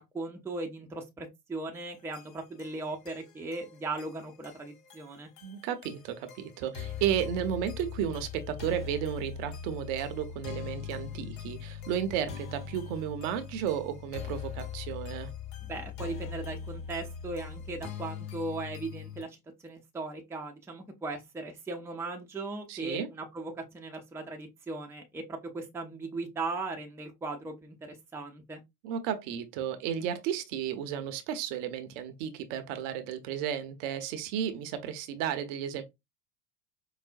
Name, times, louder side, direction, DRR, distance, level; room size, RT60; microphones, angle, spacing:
voice 1, 0.0-5.3 15.7-19.4 19.6-28.6, right 3 dB, 5° right, 0.6 m, -38 dB
sound 1, 1.7-19.2, left 7 dB, 60° left, 1.2 m, -41 dB
voice 2, 5.4-15.3 22.7-23.1 28.8-35.8, right 9 dB, 50° right, 0.7 m, -33 dB
4.7 x 2.0 x 2.5 m
hypercardioid pair, 85°, 48 cm